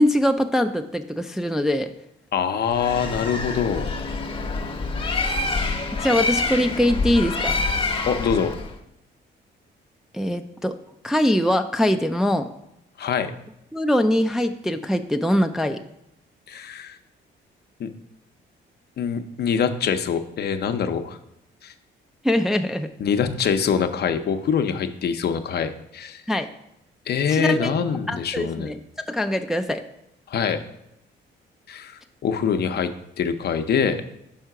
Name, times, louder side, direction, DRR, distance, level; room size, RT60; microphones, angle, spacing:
voice 1, 0.0-1.9 6.0-7.6 10.1-10.7 11.0-12.5 13.7-15.8 22.2-22.9 26.3-26.5 27.3-27.7 28.1-28.8 29.1-29.8, left 1 dB, ahead, 6 dB, 0.3 m, -22 dB
voice 2, 2.3-3.9 8.1-8.5 13.0-13.3 16.5-17.0 17.8-17.9 19.0-21.2 21.6-21.7 23.0-26.2 27.1-28.7 30.3-30.6 31.7-32.9 33.2-34.0, left 7 dB, 55° left, 8 dB, 0.6 m, -24 dB
Bird, 2.7-8.7, left 3 dB, 25° left, 0.8 m, -26 dB
5.6 x 3.6 x 5.8 m, 0.82 s
cardioid pair, 90°, 20 cm